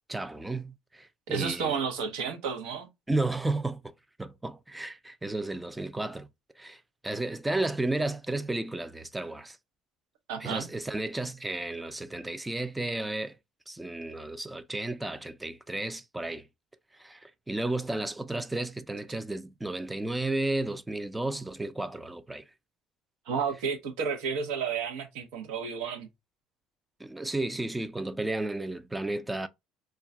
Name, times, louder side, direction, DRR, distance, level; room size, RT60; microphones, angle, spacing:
voice 1, 0.1-1.8 3.1-3.9 4.2-6.3 6.6-9.6 10.4-13.4 13.7-16.4 17.0-22.4 27.0-29.5, right 2 dB, 10° right, 0.3 m, -33 dB
voice 2, 1.3-2.9 10.3-10.7 23.3-26.1, right 6 dB, 85° right, 0.7 m, -31 dB
2.3 x 2.2 x 3.6 m
supercardioid pair, 100°, 0 cm